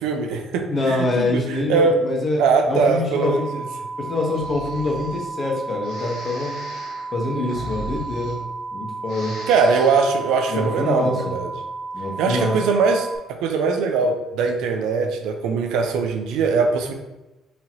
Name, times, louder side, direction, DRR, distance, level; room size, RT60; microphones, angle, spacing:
voice 1, 0.0-2.0 2.4-3.6 9.5-11.5 12.2-16.9, right 4 dB, 85° right, 4 dB, 0.5 m, -21 dB
voice 2, 0.7-2.4 2.7-3.5 4.0-6.6 7.1-8.4 8.7-9.3 10.5-11.3 11.9-12.6, left 2 dB, 35° left, 0 dB, 0.9 m, -25 dB
sound 1, 3.2-13.2, right 3 dB, ahead, 0.4 m, -33 dB
Breathing, 4.2-5.3 5.8-8.7 9.0-10.2, equal, 80° left, 1.0 m, -38 dB
4.0 x 2.9 x 3.0 m, 1.0 s
cardioid pair, 115°, 0 cm